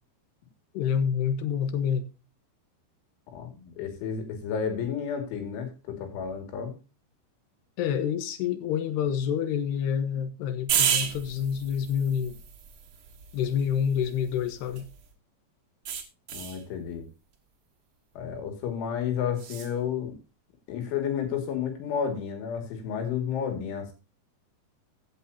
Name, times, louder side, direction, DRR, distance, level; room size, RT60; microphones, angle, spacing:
voice 1, 0.7-2.1 7.8-12.4 13.3-14.9, left 8 dB, 70° left, 3.2 m, -27 dB
voice 2, 3.3-6.8 16.3-17.1 18.2-20.2 20.7-23.9, left 7 dB, 90° left, 4.8 m, -31 dB
sound 1, 10.7-15.1 15.8-16.6 19.4-19.7, right 8 dB, 60° right, 1.6 m, -32 dB
15.5 x 8.3 x 2.8 m
omnidirectional pair, 5.3 m